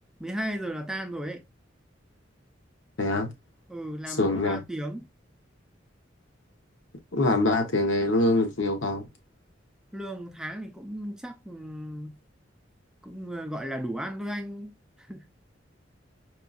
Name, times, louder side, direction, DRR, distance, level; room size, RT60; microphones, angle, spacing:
voice 1, 0.2-1.4 3.7-5.1 9.9-12.1 13.0-15.3, right 1 dB, 5° right, 0.5 m, -35 dB
voice 2, 3.0-3.3 4.1-4.6 7.1-9.1, left 2 dB, 80° left, 0.9 m, -24 dB
4.6 x 2.5 x 2.3 m
head